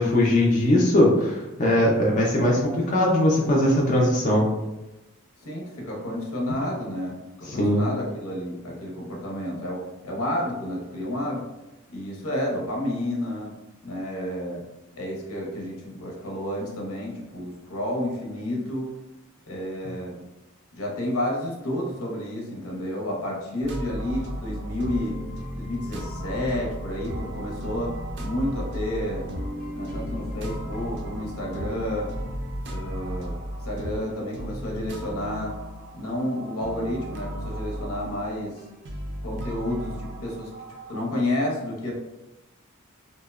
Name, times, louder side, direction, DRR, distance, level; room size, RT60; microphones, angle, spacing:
voice 1, 0.0-4.5 7.5-7.8, left 1 dB, 35° left, -3 dB, 0.4 m, -20 dB
voice 2, 5.4-11.5 11.9-13.6 13.8-14.6 15.0-18.9 19.5-20.2 20.7-25.2 25.5-27.9 28.2-29.3 29.7-32.1 32.7-33.4 33.6-35.6 35.9-38.6 39.2-40.5 40.9-41.9, left 1 dB, 85° left, -2 dB, 0.7 m, -30 dB
sound 1, 23.6-41.1, equal, 50° right, 0.4 m, -35 dB
2.8 x 2.0 x 2.3 m, 0.98 s
head